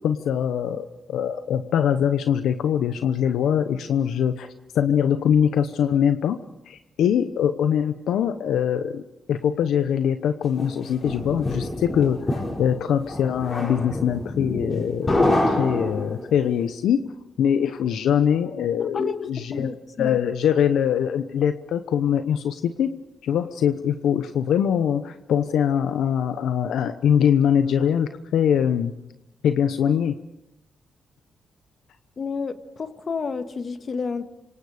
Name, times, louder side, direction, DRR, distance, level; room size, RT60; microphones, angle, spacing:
voice 1, 0.0-4.5 4.7-6.4 6.7-9.0 9.3-17.0 17.4-19.7 20.0-23.0 23.2-28.9 29.4-30.1, left 8 dB, 80° left, 0.9 m, -23 dB
sound 1, 10.6-16.5, left 1 dB, 35° left, 6.4 m, -26 dB
voice 2, 19.5-20.2 32.2-32.5 32.8-34.3, left 5 dB, 50° left, 1.8 m, -29 dB
27.5 x 25.0 x 5.1 m
cardioid pair, 65°, 0 cm